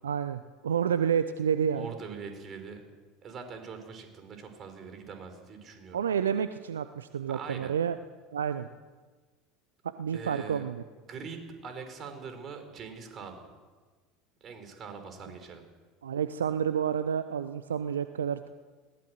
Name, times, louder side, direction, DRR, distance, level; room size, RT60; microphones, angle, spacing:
voice 1, 0.0-1.9 5.9-8.0 8.3-8.7 10.0-10.8 16.0-18.5, right 8 dB, 75° right, 12 dB, 0.7 m, -29 dB
voice 2, 1.7-2.8 3.2-6.0 7.3-7.7 10.1-10.7 11.1-13.5 14.4-15.6, right 5 dB, 35° right, 7 dB, 5.1 m, -43 dB
20.5 x 18.5 x 7.8 m, 1.4 s
figure-of-eight pair, 70°, 0 cm